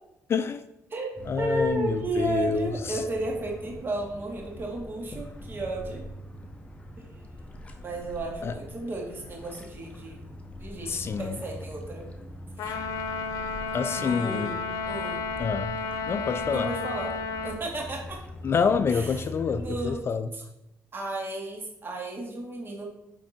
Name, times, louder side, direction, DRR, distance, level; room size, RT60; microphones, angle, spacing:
voice 1, 0.3-0.6 1.3-3.0 8.4-8.6 10.9-11.4 13.7-14.5 15.4-15.7 16.1-16.7 18.4-20.3, left 5 dB, 45° left, 0.4 m, -27 dB
voice 2, 0.9-6.0 7.0-7.1 7.8-10.2 10.6-12.1 12.6-12.7 14.0-14.6 14.9-15.3 16.5-17.1 17.4-18.2 18.9-20.0 20.3-20.4 20.9-22.9, right 2 dB, 40° right, 2.1 m, -33 dB
sound 1, 1.2-19.9, left 1 dB, 20° left, 1.0 m, -43 dB
Trumpet, 12.6-17.6, left 4 dB, 80° left, 0.8 m, -32 dB
9.3 x 3.6 x 4.3 m
cardioid pair, 95°, 6 cm